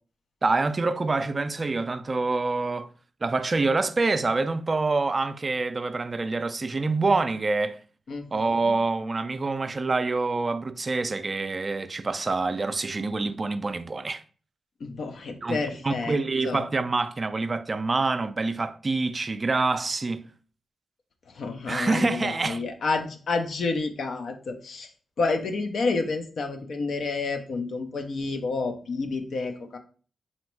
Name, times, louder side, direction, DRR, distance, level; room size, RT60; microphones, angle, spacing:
voice 1, 0.4-2.9 3.2-7.8 8.3-14.2 15.4-15.6 15.8-20.2 21.7-22.6, right 3 dB, 45° right, 0.4 m, -26 dB
voice 2, 8.1-8.7 14.8-16.2 16.4-16.6 21.3-24.9 25.2-29.8, left 3 dB, 75° left, 0.6 m, -29 dB
4.1 x 2.0 x 4.4 m
supercardioid pair, 50°, 0 cm